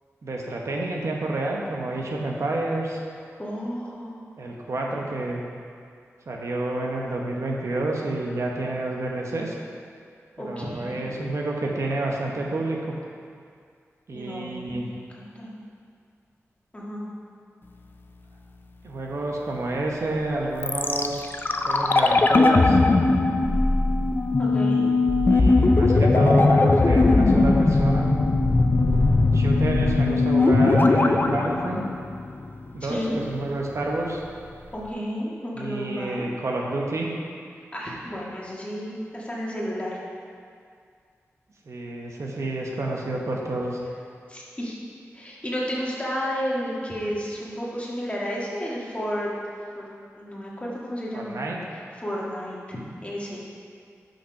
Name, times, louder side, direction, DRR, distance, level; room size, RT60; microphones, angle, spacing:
voice 1, 0.2-3.0 4.4-5.4 6.3-9.6 10.5-12.9 14.1-14.8 18.8-22.8 25.2-28.1 29.3-31.8 32.7-34.2 35.5-37.1 41.7-43.8 51.1-51.6, right 2 dB, 70° right, -1 dB, 1.0 m, -29 dB
voice 2, 3.4-4.2 10.4-11.1 14.1-15.5 16.7-17.0 24.4-24.8 32.9-33.2 34.7-36.3 37.7-40.0 44.3-44.8 45.1-49.3 49.8-49.9 50.2-51.4 52.0-53.4, equal, 25° left, -5 dB, 1.7 m, -32 dB
sound 1, 20.6-32.6 32.9-33.0, left 3 dB, 40° left, 0.4 m, -19 dB
5.9 x 5.7 x 5.8 m, 2.2 s
wide cardioid pair, 65°, 5 cm